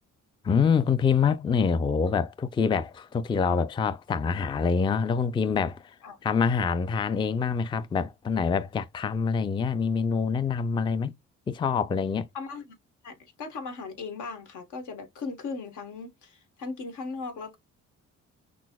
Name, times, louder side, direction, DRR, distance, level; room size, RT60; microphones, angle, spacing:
voice 1, 0.4-5.9 6.2-11.2 11.5-12.3, left 5 dB, 15° left, 0.3 m, -26 dB
voice 2, 12.3-12.8 13.0-17.6, left 4 dB, 80° left, 1.3 m, -38 dB
5.9 x 2.0 x 2.2 m
cardioid pair, 90°, 30 cm